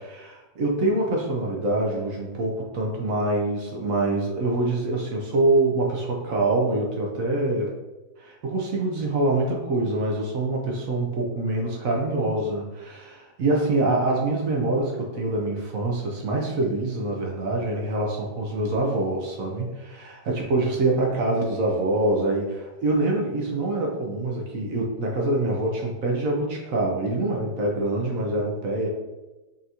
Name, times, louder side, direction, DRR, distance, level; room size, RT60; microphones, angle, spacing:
voice 1, 0.0-7.7 8.2-28.9, right 2 dB, 60° right, -1 dB, 0.9 m, -25 dB
5.6 x 2.7 x 2.8 m, 1.1 s
omnidirectional pair, 2.0 m